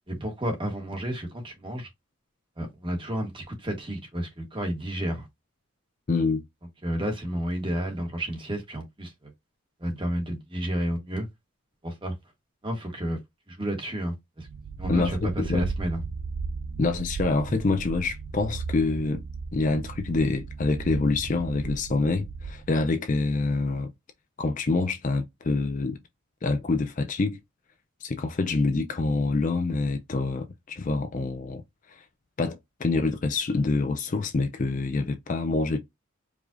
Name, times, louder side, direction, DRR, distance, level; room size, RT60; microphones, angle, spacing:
voice 1, 0.1-1.9 2.6-5.3 6.8-9.3 9.8-11.3 11.8-12.1 12.6-13.2 13.5-14.5 14.8-16.0, right 1 dB, 25° right, 1.2 m, -31 dB
voice 2, 6.1-6.4 14.9-15.7 16.8-19.2 19.5-23.9 24.4-26.0 26.4-27.4 28.0-31.6 31.9-32.0 32.4-35.8, left 3 dB, 35° left, 0.4 m, -26 dB
sound 1, 14.4-22.8, right 4 dB, 60° right, 0.3 m, -36 dB
4.8 x 2.4 x 2.5 m
head